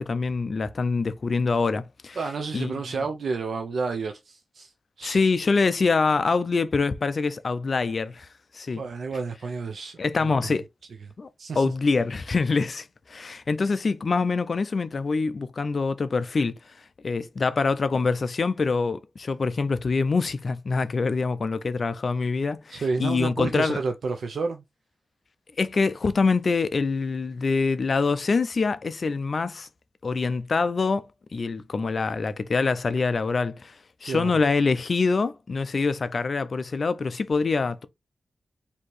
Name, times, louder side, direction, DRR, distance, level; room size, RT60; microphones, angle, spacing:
voice 1, 0.0-2.2 2.5-2.8 5.0-8.3 8.5-8.8 10.0-10.7 11.2-11.3 11.6-16.5 17.0-23.8 25.6-29.7 30.0-33.8 34.0-37.9, left 4 dB, 45° left, 0.4 m, -25 dB
voice 2, 2.2-4.7 5.0-5.2 8.7-10.5 11.0-11.1 11.4-11.6 22.7-24.6 34.0-34.3, right 4 dB, 70° right, 0.5 m, -30 dB
4.3 x 2.7 x 3.1 m
wide cardioid pair, 135°, 0 cm